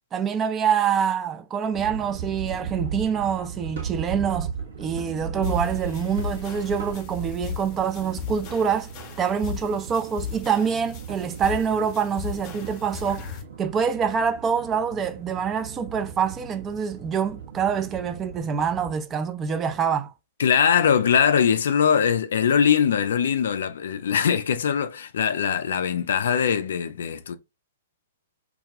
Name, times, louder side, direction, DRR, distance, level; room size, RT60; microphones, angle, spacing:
voice 1, 0.1-4.5 4.8-8.9 9.2-13.3 13.6-20.1, right 7 dB, 20° right, 0.3 m, -25 dB
sound 1, 1.7-18.9, right 7 dB, 60° right, 0.8 m, -37 dB
sound 2, 2.0-10.1, left 1 dB, 90° right, 0.9 m, -42 dB
sound 3, 5.4-13.4, left 8 dB, 35° left, 0.7 m, -37 dB
voice 2, 20.4-27.4, left 7 dB, 60° left, 0.3 m, -21 dB
2.3 x 2.2 x 2.7 m
figure-of-eight pair, 110°, 0 cm